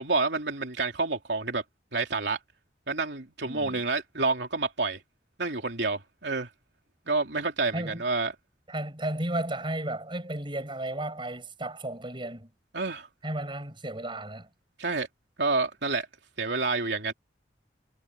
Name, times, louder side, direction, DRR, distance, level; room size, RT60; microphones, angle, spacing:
voice 1, 0.0-1.6 1.9-2.4 2.9-5.0 5.4-6.5 7.1-8.3 12.7-13.1 14.8-15.1 15.4-16.1 16.4-17.1, right 3 dB, 80° right, 3.2 m, -28 dB
voice 2, 3.5-3.8 7.7-8.0 8.7-12.5 13.2-14.5, right 1 dB, 30° right, 7.0 m, -33 dB
head